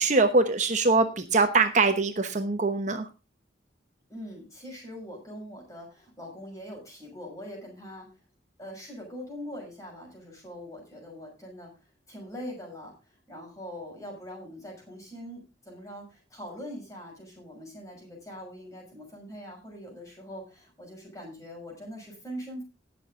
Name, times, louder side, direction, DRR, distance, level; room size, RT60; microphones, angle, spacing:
voice 1, 0.0-3.1, right 3 dB, 40° right, 7 dB, 1.0 m, -23 dB
voice 2, 4.1-8.1 8.6-22.6, equal, 20° left, -1 dB, 6.1 m, -42 dB
18.0 x 6.9 x 3.7 m, 0.28 s
head